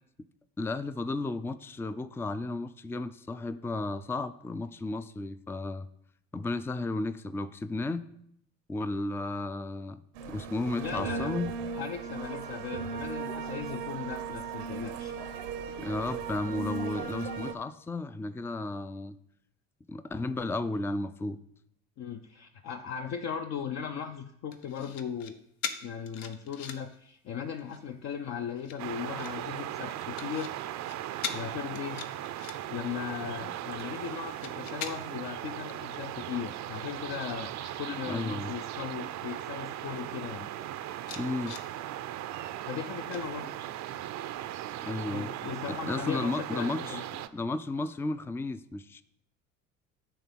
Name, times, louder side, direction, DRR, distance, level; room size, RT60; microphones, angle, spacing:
voice 1, 0.6-5.9 6.3-8.1 8.7-10.0 10.2-11.5 15.8-19.2 19.9-21.4 33.4-33.5 38.1-38.6 41.2-41.6 44.8-45.3 45.7-49.0, left 2 dB, 5° left, 13 dB, 0.4 m, -33 dB
sound 1, 10.2-17.5, right 5 dB, 75° right, 0.9 m, -37 dB
voice 2, 10.8-11.3 11.8-15.1 22.0-25.4 25.8-30.6 31.3-32.0 32.7-37.5 37.8-40.5 42.6-43.5 45.1-47.0, left 7 dB, 45° left, 6 dB, 0.7 m, -38 dB
sound 2, 24.5-25.3 25.6-27.0 27.4-27.9 28.5-29.3 29.9-30.5 30.8-30.9 31.2-31.4 31.7-32.8 33.3-35.2 35.7-35.8 36.2-37.7 38.0-38.4 39.0-39.1 39.4-40.0 40.5-40.6 41.0-41.7 43.1-43.8 44.2-44.4, left 7 dB, 70° left, 0.9 m, -42 dB
sound 3, 28.8-47.3, right 12 dB, 50° right, 0.6 m, -38 dB
10.0 x 3.5 x 7.1 m, 0.73 s
hypercardioid pair, 65°, 37 cm